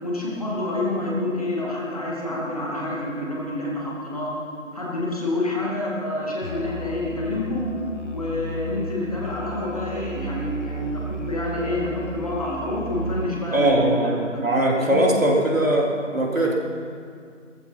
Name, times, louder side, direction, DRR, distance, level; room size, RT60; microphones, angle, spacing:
voice 1, 0.0-4.3 4.7-7.7 8.1-14.4 14.8-15.1, left 1 dB, 30° left, -4 dB, 2.3 m, -28 dB
Musical instrument, 6.4-13.4, right 1 dB, 60° left, 1.4 m, -34 dB
voice 2, 13.5-16.5, right 1 dB, 85° right, -2 dB, 3.8 m, -21 dB
16.0 x 14.5 x 5.8 m, 2.2 s
figure-of-eight pair, 170°, 39 cm